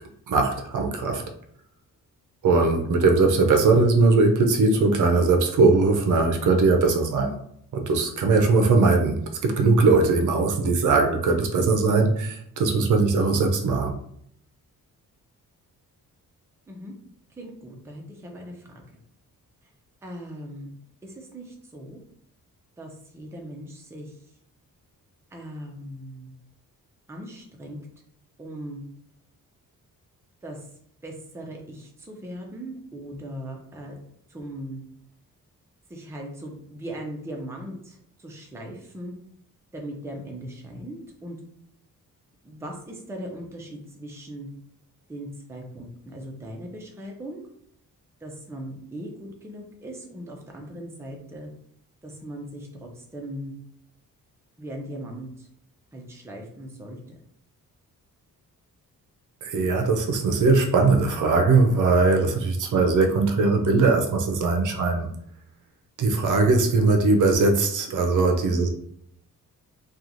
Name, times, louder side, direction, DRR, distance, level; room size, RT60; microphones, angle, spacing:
voice 1, 0.3-1.2 2.4-7.4 7.7-14.0 59.4-65.1 66.0-68.7, right 3 dB, 65° right, 3 dB, 0.5 m, -20 dB
voice 2, 17.4-19.0 20.0-20.7 21.0-22.0 22.8-24.2 25.3-26.3 27.1-27.8 28.4-28.8 30.4-30.7 31.0-34.0 34.3-34.8 35.9-39.1 39.7-41.4 42.4-44.5 45.1-47.5 48.2-51.5 52.0-53.5 54.6-55.5 55.9-57.2, right 1 dB, 10° right, 0 dB, 0.4 m, -39 dB
3.0 x 2.3 x 2.5 m, 0.68 s
wide cardioid pair, 155°, 34 cm